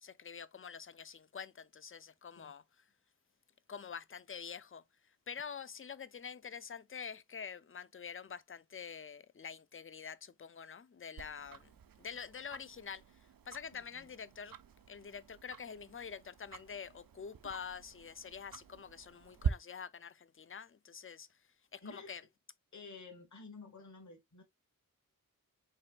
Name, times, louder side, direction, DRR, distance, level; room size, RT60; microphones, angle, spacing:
voice 1, 0.0-2.6 3.7-4.8 5.3-11.7 12.0-13.0 13.5-14.5 14.9-21.3 21.7-22.2, left 6 dB, 35° left, 0.5 m, -46 dB
Tick-tock, 11.2-19.5, right 7 dB, 70° right, 0.6 m, -45 dB
voice 2, 13.7-14.1 21.8-22.1 22.7-24.4, left 3 dB, 50° left, 1.7 m, -52 dB
5.5 x 3.8 x 2.4 m
wide cardioid pair, 80°, 35 cm